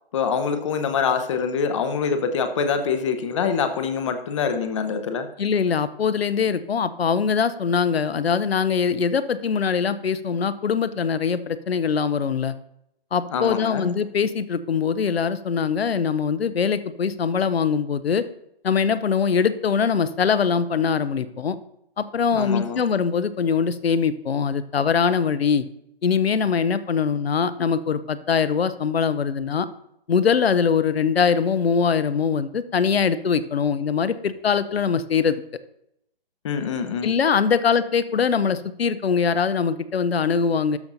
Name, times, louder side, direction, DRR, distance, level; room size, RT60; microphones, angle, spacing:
voice 1, 0.1-5.3 13.3-13.9 22.3-22.8 36.4-37.1, left 6 dB, 30° left, 8 dB, 0.7 m, -25 dB
voice 2, 5.4-12.5 13.1-18.3 18.6-21.6 22.0-25.6 26.0-29.7 30.1-35.4 37.0-40.8, left 6 dB, 75° left, 14 dB, 0.7 m, -22 dB
13.0 x 5.7 x 2.6 m, 0.78 s
figure-of-eight pair, 135°, 30 cm